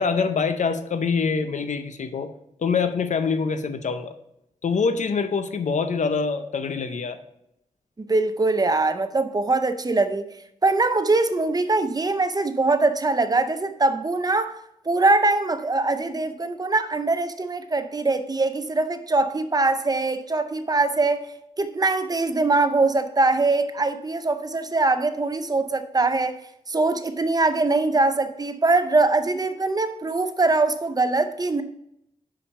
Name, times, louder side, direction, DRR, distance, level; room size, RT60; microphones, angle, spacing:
voice 1, 0.0-2.3 2.6-4.1 4.6-7.2, left 5 dB, 70° left, 0.6 m, -25 dB
voice 2, 8.1-10.2 10.6-14.6 14.9-21.3 21.6-26.4 26.7-31.6, right 3 dB, 30° right, 0.5 m, -22 dB
5.7 x 5.1 x 5.3 m
wide cardioid pair, 80°, 13 cm